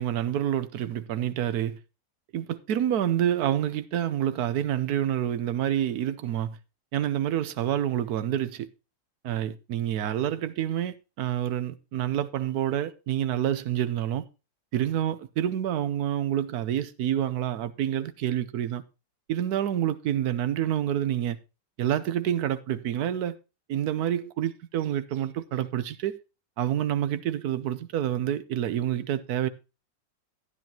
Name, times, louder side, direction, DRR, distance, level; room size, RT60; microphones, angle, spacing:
voice 1, 0.0-1.8 2.3-6.6 6.9-8.7 9.2-14.2 14.7-18.8 19.3-21.4 21.8-23.4 23.7-26.2 26.6-29.5, right 11 dB, 65° right, 1.1 m, -28 dB
13.0 x 9.8 x 2.9 m
omnidirectional pair, 2.0 m